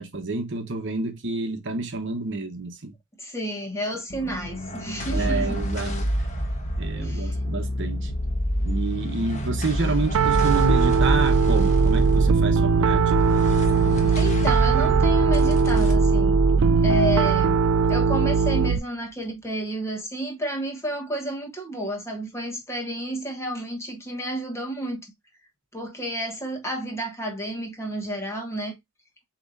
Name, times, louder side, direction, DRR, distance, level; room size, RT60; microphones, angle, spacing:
voice 1, 0.0-2.9 4.2-4.3 5.0-6.0 6.8-8.1 8.6-13.1 16.6-17.0, right 3 dB, 55° right, 1.0 m, -29 dB
voice 2, 3.2-5.6 7.0-7.3 14.1-16.4 16.8-17.6 17.9-25.0 25.7-28.7, equal, 10° left, 1.3 m, -31 dB
sound 1, 4.1-18.7, equal, 30° left, 1.2 m, -28 dB
Piano, 10.1-18.8, right 5 dB, 70° right, 0.3 m, -20 dB
6.9 x 3.0 x 2.5 m
head